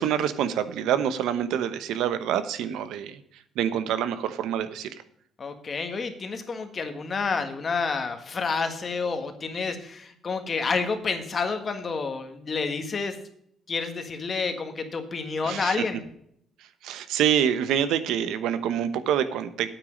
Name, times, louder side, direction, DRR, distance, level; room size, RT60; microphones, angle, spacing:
voice 1, 0.0-3.2 3.5-5.0 15.4-15.8 16.8-19.7, right 9 dB, 85° right, 12 dB, 1.0 m, -26 dB
voice 2, 5.4-13.2 13.7-16.0, left 4 dB, 35° left, 7 dB, 1.6 m, -29 dB
9.1 x 9.0 x 5.2 m, 0.68 s
cardioid pair, 130°, 0 cm